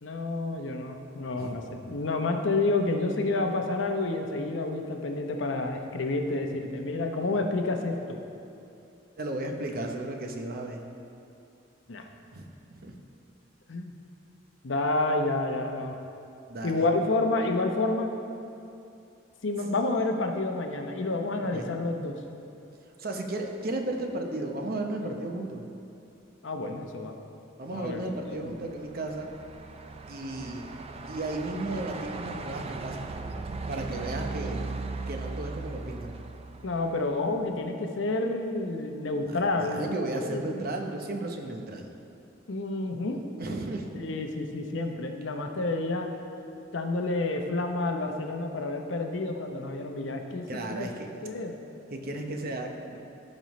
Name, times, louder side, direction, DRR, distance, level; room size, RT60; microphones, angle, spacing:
voice 1, 0.0-8.0 11.9-12.1 13.7-13.9 14.6-16.0 16.6-18.1 19.4-22.2 25.0-25.1 26.4-27.1 27.7-28.6 36.6-40.6 42.5-43.2 43.9-46.1 46.7-50.9 51.2-51.6, left 2 dB, 75° left, 4 dB, 0.8 m, -29 dB
voice 2, 9.2-10.8 12.3-13.0 16.5-16.9 21.4-21.7 23.0-25.6 27.6-29.3 30.1-30.6 31.1-33.1 33.7-34.6 35.1-36.2 39.3-41.9 43.4-43.9 50.5-51.1 51.9-53.0, right 2 dB, 50° right, 3 dB, 0.8 m, -34 dB
Truck, 28.0-37.4, right 3 dB, 30° right, 0.4 m, -38 dB
15.5 x 5.4 x 3.1 m, 2.7 s
head